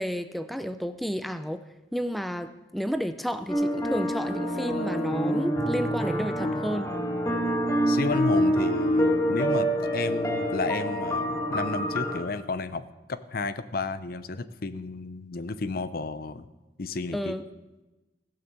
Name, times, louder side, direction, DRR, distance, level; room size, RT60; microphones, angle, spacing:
voice 1, 0.0-1.6 1.9-6.9 17.1-17.4, equal, ahead, 9 dB, 0.4 m, -31 dB
sound 1, 3.5-12.2, equal, 20° left, 1.7 m, -26 dB
voice 2, 7.9-16.5 16.8-17.4, left 3 dB, 55° left, 13 dB, 0.6 m, -32 dB
16.0 x 6.6 x 7.2 m, 1.1 s
head